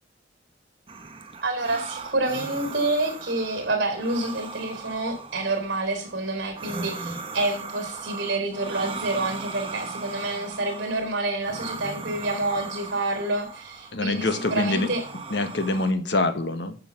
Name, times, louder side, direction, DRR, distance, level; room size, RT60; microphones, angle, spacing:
sound 1, 0.9-15.9, right 3 dB, 30° right, 1.0 m, -38 dB
voice 1, 1.4-15.0, right 2 dB, 65° right, 5 dB, 3.6 m, -28 dB
voice 2, 13.9-14.9 15.3-16.8, left 2 dB, 65° left, 9 dB, 1.1 m, -25 dB
9.0 x 5.6 x 7.2 m, 0.41 s
head